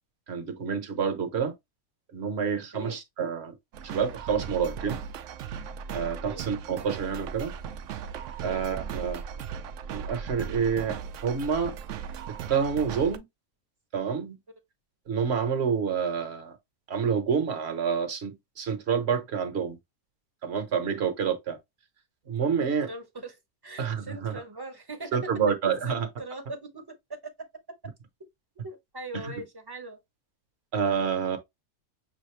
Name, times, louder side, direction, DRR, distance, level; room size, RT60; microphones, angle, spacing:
voice 1, 0.3-1.5 2.1-3.5 3.8-5.0 5.9-7.5 8.4-9.2 9.9-11.7 12.5-13.3 13.9-14.4 15.1-16.6 16.9-19.8 20.4-21.6 22.3-22.9 23.8-24.4 25.1-26.1 29.1-29.3 30.7-31.4, right 6 dB, 50° right, 1.1 m, -28 dB
sound 1, 3.7-13.2, right 7 dB, 65° right, 0.8 m, -37 dB
voice 2, 22.6-25.3 25.8-26.9 28.6-30.0, right 2 dB, 20° right, 0.8 m, -41 dB
6.3 x 2.6 x 3.1 m
omnidirectional pair, 1.5 m